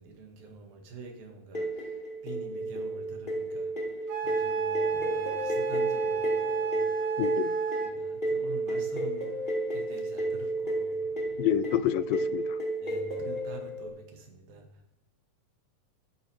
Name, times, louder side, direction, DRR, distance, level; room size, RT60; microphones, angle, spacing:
voice 1, 0.0-3.7 4.2-6.9 7.8-11.4 12.8-14.7, right 4 dB, 85° right, 3 dB, 3.6 m, -46 dB
sound 1, 1.5-13.9, right 2 dB, 15° left, 2.3 m, -31 dB
Wind instrument woodwind instrument, 4.1-8.0, right 8 dB, 70° right, 2.9 m, -34 dB
voice 2, 7.2-7.5 11.4-12.6, left 11 dB, 85° left, 15 dB, 2.3 m, -28 dB
14.5 x 9.7 x 4.7 m, 0.86 s
omnidirectional pair, 4.0 m